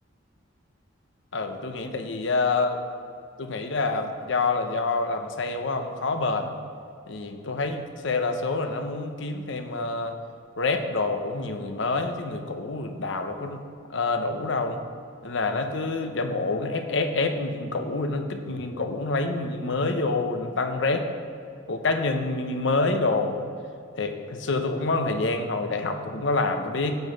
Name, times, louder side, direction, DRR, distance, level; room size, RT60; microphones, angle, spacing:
voice 1, 1.3-2.8 3.4-6.6 7.1-10.1 10.6-13.6 13.9-14.8 15.2-21.1 21.7-23.4 24.0-27.0, left 3 dB, 65° left, 6 dB, 0.8 m, -27 dB
8.1 x 7.8 x 5.2 m, 2.4 s
head